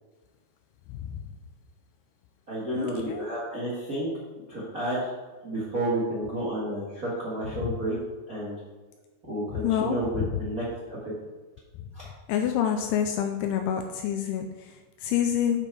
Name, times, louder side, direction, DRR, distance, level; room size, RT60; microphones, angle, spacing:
voice 1, 0.9-1.3 2.7-3.2 7.6-7.8 9.5-10.4 11.8-11.9 12.3-15.7, left 9 dB, 85° left, 5 dB, 2.3 m, -28 dB
voice 2, 2.5-4.1 4.5-5.1 5.4-8.0 8.3-8.6 9.3-11.0 11.9-12.0, right 1 dB, 70° right, -7 dB, 0.8 m, -31 dB
9.1 x 5.4 x 4.7 m, 1.3 s
omnidirectional pair, 5.0 m